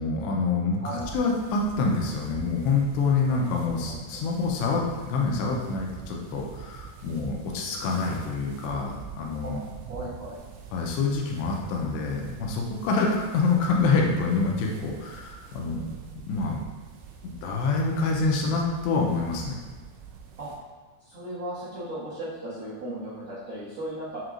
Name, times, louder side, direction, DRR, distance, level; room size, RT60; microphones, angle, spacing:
voice 1, 0.0-9.6 10.7-15.8 16.3-16.6 17.2-19.6, left 4 dB, 85° left, -1 dB, 2.9 m, -26 dB
sound 1, 0.9-20.6, right 6 dB, 85° right, 2.7 m, -45 dB
voice 2, 9.4-10.4 20.4-20.5 21.0-24.2, right 1 dB, 55° right, -12 dB, 1.3 m, -36 dB
7.5 x 2.8 x 2.5 m, 1.3 s
omnidirectional pair, 4.8 m